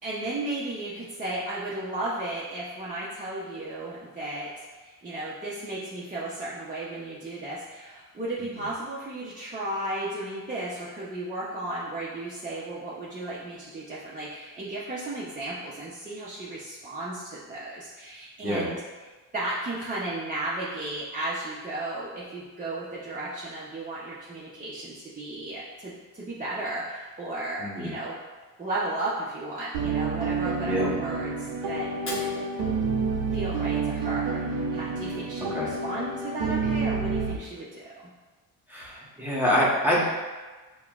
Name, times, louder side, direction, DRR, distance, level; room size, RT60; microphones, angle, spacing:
voice 1, 0.0-18.8 19.3-28.1 28.6-32.5 33.3-38.1, right 2 dB, 20° right, -8 dB, 0.7 m, -34 dB
voice 2, 27.6-27.9 30.7-30.9 35.5-35.7 38.7-40.0, equal, 5° right, -7 dB, 1.1 m, -25 dB
sound 1, 29.7-37.4, right 4 dB, 85° right, 0.6 m, -29 dB
Fire, 31.9-33.9, left 1 dB, 35° left, 1.1 m, -43 dB
5.8 x 2.2 x 2.4 m, 1.3 s
cardioid pair, 95°, 38 cm